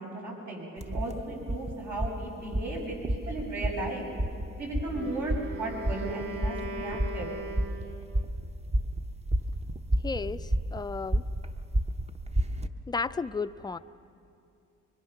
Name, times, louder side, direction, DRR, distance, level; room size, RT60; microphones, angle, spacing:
voice 1, 0.0-4.0 4.5-7.3, right 2 dB, 70° right, -2 dB, 6.3 m, -35 dB
sound 1, 0.8-12.7, right 1 dB, 20° right, 0.8 m, -32 dB
Wind instrument woodwind instrument, 4.8-8.3, right 2 dB, 45° right, 1.4 m, -40 dB
voice 2, 10.0-11.2 12.9-13.8, left 4 dB, 15° left, 12 dB, 0.5 m, -33 dB
24.0 x 23.5 x 5.8 m, 2.6 s
cardioid pair, 90°, 30 cm